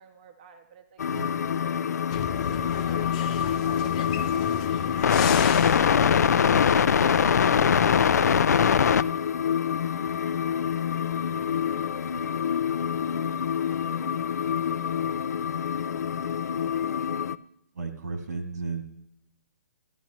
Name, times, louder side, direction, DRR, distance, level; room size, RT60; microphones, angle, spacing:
voice 1, 0.0-1.5 2.4-3.1 3.4-4.3 4.5-5.4 10.4-12.1 12.9-14.4 14.8-15.7 16.3-16.6, right 7 dB, 30° right, 6 dB, 0.6 m, -54 dB
sound 1, 1.0-17.4, left 7 dB, 90° left, 0.4 m, -24 dB
sound 2, 2.1-7.6, left 9 dB, 25° left, 0.4 m, -35 dB
voice 2, 17.7-18.8, right 4 dB, 90° right, 4 dB, 2.1 m, -33 dB
13.5 x 10.0 x 3.0 m, 0.78 s
hypercardioid pair, 165°, 9 cm